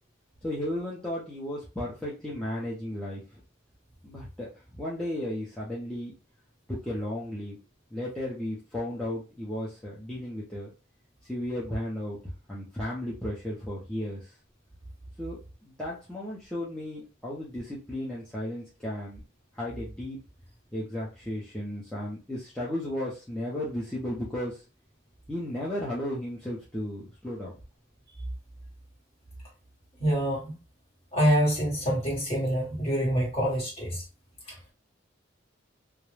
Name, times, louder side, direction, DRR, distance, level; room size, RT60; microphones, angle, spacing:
voice 1, 0.4-3.4 4.0-6.1 6.7-7.6 7.9-10.7 11.2-14.4 15.2-15.4 15.6-19.2 19.5-20.2 20.7-24.7 25.3-27.5, left 1 dB, 5° left, 0.5 m, -34 dB
voice 2, 30.0-30.6 31.1-34.0, right 1 dB, 30° left, 1.2 m, -26 dB
2.3 x 2.0 x 3.1 m
head